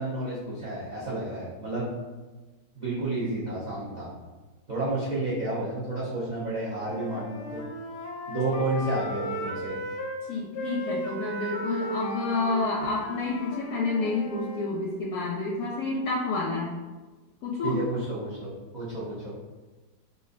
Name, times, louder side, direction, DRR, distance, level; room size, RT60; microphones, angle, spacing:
voice 1, 0.0-2.0 2.7-4.1 4.7-7.6 8.3-9.8 17.6-19.4, right 2 dB, 75° right, -9 dB, 0.4 m, -31 dB
Wind instrument woodwind instrument, 6.7-10.2 10.5-14.7, left 1 dB, 90° left, 1.2 m, -36 dB
voice 2, 10.3-16.8 17.4-17.8, left 3 dB, 70° left, -3 dB, 0.9 m, -29 dB
4.1 x 2.6 x 2.5 m, 1.3 s
omnidirectional pair, 1.9 m